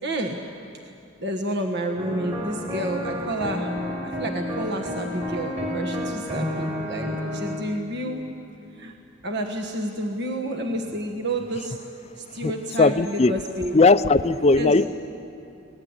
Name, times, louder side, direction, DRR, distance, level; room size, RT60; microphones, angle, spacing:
voice 1, 0.0-0.4 1.2-3.7 4.0-7.1 7.3-8.2 8.8-8.9 9.2-11.8 12.2-13.8 14.6-14.9, right 1 dB, 55° right, 2 dB, 1.5 m, -30 dB
sound 1, 2.0-7.6, left 1 dB, 30° right, 4.8 m, -30 dB
voice 2, 12.8-13.3 13.7-14.9, left 3 dB, 30° left, 13 dB, 0.5 m, -17 dB
25.0 x 19.0 x 9.7 m, 2.8 s
head